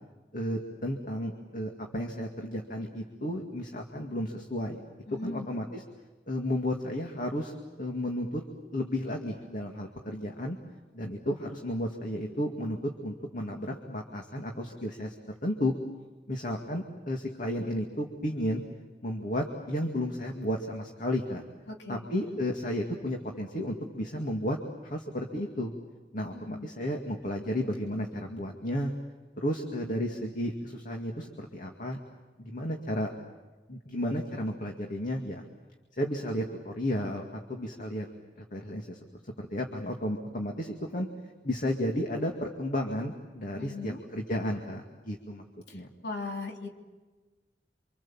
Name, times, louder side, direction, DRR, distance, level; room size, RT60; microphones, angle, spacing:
voice 1, 0.3-4.8 5.2-5.8 6.3-10.6 10.9-15.1 15.4-15.7 16.3-18.6 19.0-21.4 21.9-24.6 24.9-25.7 26.1-28.9 29.4-32.0 32.4-33.1 33.7-35.4 36.0-37.2 37.5-38.1 38.4-39.0 39.4-41.1 41.4-45.4 45.7-45.9, left 1 dB, 45° left, 2 dB, 2.3 m, -33 dB
voice 2, 5.1-5.5 21.7-22.1 26.3-26.7 43.6-44.0 45.7-46.7, left 3 dB, 70° left, 1 dB, 3.1 m, -39 dB
28.5 x 26.5 x 7.3 m, 1.3 s
head